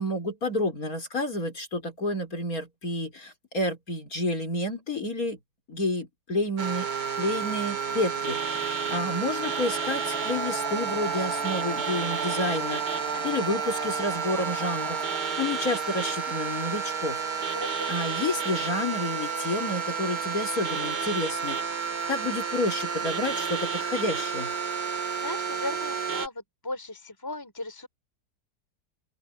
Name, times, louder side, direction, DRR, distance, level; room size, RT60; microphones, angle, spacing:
voice 1, 0.0-5.4 5.7-6.9 7.2-12.8 13.2-15.0 15.4-17.2 17.9-21.6 22.1-24.5, left 1 dB, 55° left, 5.2 m, -30 dB
sound 1, 6.6-26.3, right 6 dB, 80° right, 3.1 m, -31 dB
sound 2, 8.1-15.8, right 3 dB, 70° left, 7.6 m, -38 dB
voice 2, 17.5-17.9 25.2-27.9, left 2 dB, 10° left, 3.2 m, -37 dB
open air
omnidirectional pair, 1.8 m